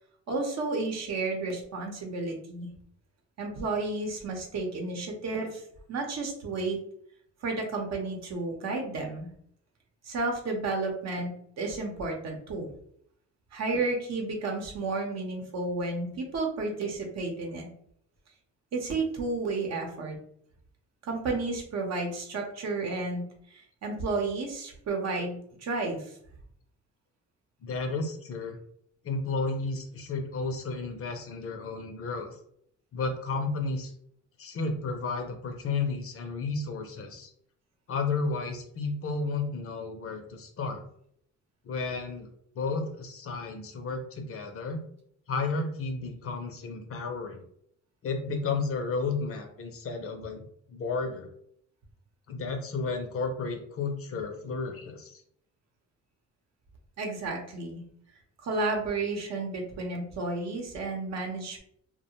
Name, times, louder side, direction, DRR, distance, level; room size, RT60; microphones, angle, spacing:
voice 1, 0.3-2.7 3.4-5.6 5.9-6.8 7.4-9.3 10.0-12.7 13.5-17.7 18.7-20.2 21.0-23.2 23.5-26.2 57.0-57.8 58.4-61.6, right 3 dB, 60° right, 1 dB, 0.8 m, -32 dB
voice 2, 27.6-28.6 29.0-32.4 32.9-33.9 34.4-37.3 37.9-40.8 41.6-42.3 42.6-44.8 45.3-47.4 48.0-50.4 50.7-51.3 52.3-55.2, left 4 dB, 50° left, 5 dB, 0.5 m, -32 dB
2.4 x 2.1 x 2.9 m, 0.69 s
cardioid pair, 90°, 30 cm